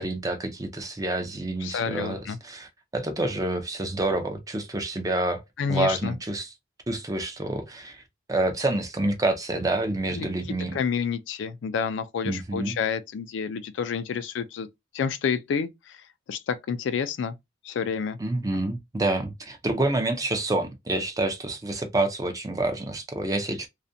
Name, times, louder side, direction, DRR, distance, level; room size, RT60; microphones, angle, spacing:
voice 1, 0.0-5.4 5.7-6.5 6.9-8.0 8.3-10.8 12.2-12.8 18.2-23.7, right 2 dB, 20° right, 0.4 m, -28 dB
voice 2, 1.6-2.4 5.6-6.2 10.1-10.3 10.7-14.7 14.9-16.0 16.3-17.4 17.6-18.2, left 6 dB, 70° left, 0.3 m, -29 dB
2.4 x 2.1 x 2.6 m
head